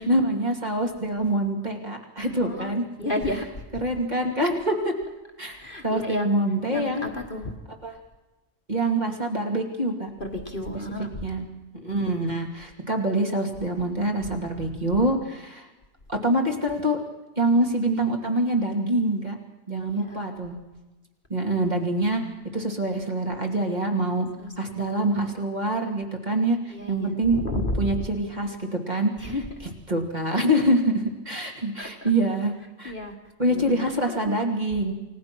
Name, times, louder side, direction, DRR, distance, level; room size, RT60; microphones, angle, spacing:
voice 1, 0.0-2.8 3.8-4.9 5.4-7.1 7.8-7.9 8.7-10.1 11.2-11.4 11.7-15.6 16.1-17.0 17.4-19.4 19.7-20.6 21.3-24.3 24.6-27.4 27.8-29.1 29.9-32.5 32.8-32.9 33.4-34.9, right 1 dB, 30° right, 1 dB, 2.7 m, -25 dB
voice 2, 2.2-3.6 5.5-6.3 6.7-7.5 10.2-11.2 14.2-14.4 15.0-15.1 19.9-20.2 24.4-24.9 25.2-25.3 26.7-28.0 29.2-29.6 31.8-32.1 32.8-33.1 33.5-34.4, left 1 dB, 40° left, 4 dB, 1.7 m, -33 dB
28.5 x 17.5 x 6.1 m, 1.1 s
omnidirectional pair, 1.4 m